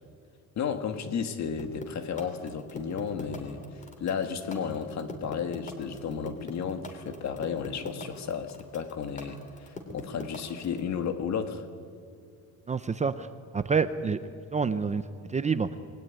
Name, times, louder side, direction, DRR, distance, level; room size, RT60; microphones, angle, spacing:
voice 1, 0.6-11.7, left 6 dB, 50° left, 8 dB, 2.0 m, -33 dB
sound 1, 1.6-10.8, left 2 dB, 20° left, 3.4 m, -40 dB
voice 2, 12.7-13.3 13.5-14.2 14.5-15.0 15.3-15.8, right 5 dB, 20° right, 11 dB, 0.6 m, -27 dB
28.5 x 21.5 x 9.4 m, 2.3 s
cardioid pair, 170°, 35 cm